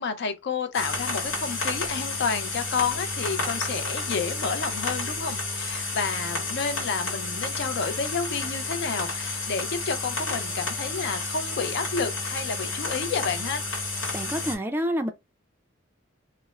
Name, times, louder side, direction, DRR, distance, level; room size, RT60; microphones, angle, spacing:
voice 1, 0.0-13.6, left 5 dB, 60° left, 0.5 m, -30 dB
sound 1, 0.7-14.6, left 3 dB, 80° left, 1.1 m, -31 dB
voice 2, 14.1-15.1, equal, 10° right, 0.3 m, -28 dB
2.4 x 2.0 x 3.1 m
head